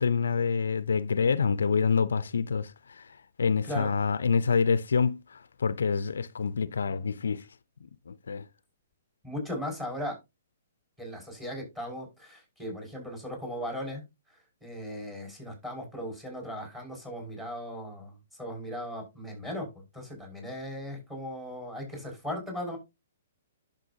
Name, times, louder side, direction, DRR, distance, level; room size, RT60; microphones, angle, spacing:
voice 1, 0.0-7.5 7.8-8.5, left 5 dB, 75° left, 0.5 m, -27 dB
voice 2, 9.2-10.2 11.0-14.0 14.6-18.1 18.4-19.7 19.9-22.8, equal, 10° right, 5.9 m, -37 dB
11.0 x 6.8 x 2.8 m
figure-of-eight pair, 125°, 0 cm